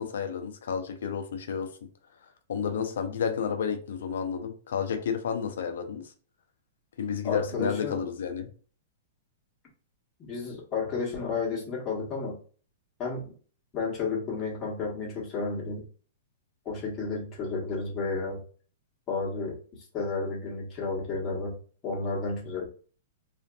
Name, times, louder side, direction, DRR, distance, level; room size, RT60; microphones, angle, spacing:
voice 1, 0.0-1.7 2.5-6.1 7.0-8.5, left 7 dB, 80° left, 0.5 m, -31 dB
voice 2, 7.2-8.0 10.2-12.4 13.0-13.3 13.7-15.8 16.6-18.4 19.1-21.6 21.8-22.7, left 4 dB, 25° left, 1.1 m, -32 dB
2.5 x 2.5 x 2.3 m
hypercardioid pair, 150°, 0 cm